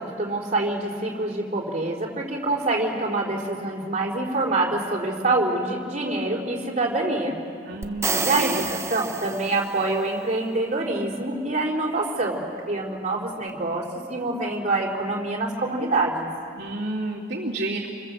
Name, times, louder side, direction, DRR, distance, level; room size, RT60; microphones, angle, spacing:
voice 1, 0.0-7.4 8.2-12.4 12.7-16.3, right 2 dB, 35° right, -1 dB, 4.0 m, -26 dB
voice 2, 7.7-8.7 16.6-17.9, right 2 dB, 60° right, -5 dB, 2.9 m, -30 dB
sound 1, 7.8-9.9, right 4 dB, 15° right, 0.8 m, -29 dB
28.0 x 25.0 x 7.7 m, 2.4 s
head